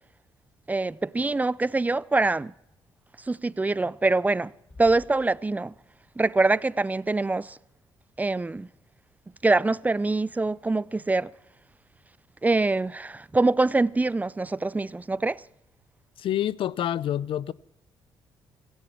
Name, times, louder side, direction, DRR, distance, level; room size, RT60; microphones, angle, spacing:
voice 1, 0.7-2.5 3.3-4.5 4.8-5.7 6.2-7.6 8.2-8.7 9.4-11.3 12.4-15.4, right 3 dB, 15° right, 0.5 m, -24 dB
Bass drum, 4.7-6.1, left 2 dB, 15° left, 5.2 m, -51 dB
voice 2, 16.2-17.5, left 11 dB, 65° left, 0.6 m, -27 dB
17.0 x 16.5 x 4.5 m
supercardioid pair, 70°, 10 cm